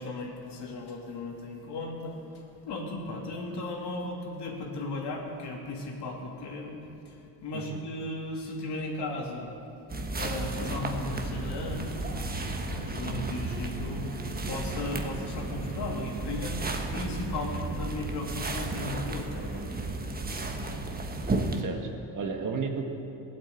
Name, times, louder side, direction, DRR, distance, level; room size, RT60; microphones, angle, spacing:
voice 1, 0.0-9.5 10.1-19.7 21.0-21.1, left 2 dB, 55° left, 0 dB, 2.9 m, -36 dB
sound 1, 9.9-21.6, right 2 dB, 20° right, 1.4 m, -33 dB
voice 2, 21.5-22.8, right 5 dB, 40° right, 4 dB, 1.6 m, -33 dB
16.5 x 8.8 x 7.9 m, 2.9 s
supercardioid pair, 95°, 48 cm